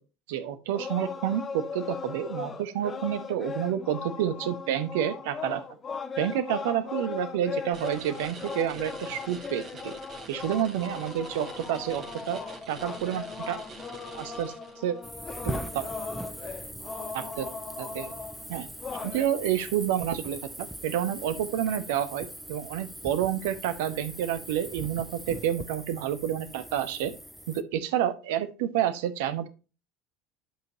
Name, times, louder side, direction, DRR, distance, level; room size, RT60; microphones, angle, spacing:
voice 1, 0.3-5.6 6.2-9.9 10.3-12.4 12.7-13.6 14.1-14.5 14.8-15.0 15.4-15.8 17.1-17.5 17.8-18.1 18.5-18.7 19.0-27.1 27.5-29.5, right 10 dB, 65° right, 12 dB, 1.0 m, -29 dB
sound 1, 0.7-19.3, left 5 dB, 30° left, 1.2 m, -38 dB
sound 2, 7.7-15.0, right 2 dB, 35° right, 2.7 m, -45 dB
sound 3, 15.0-27.6, equal, 5° right, 0.7 m, -41 dB
11.0 x 5.4 x 2.8 m, 0.31 s
figure-of-eight pair, 65°, 0 cm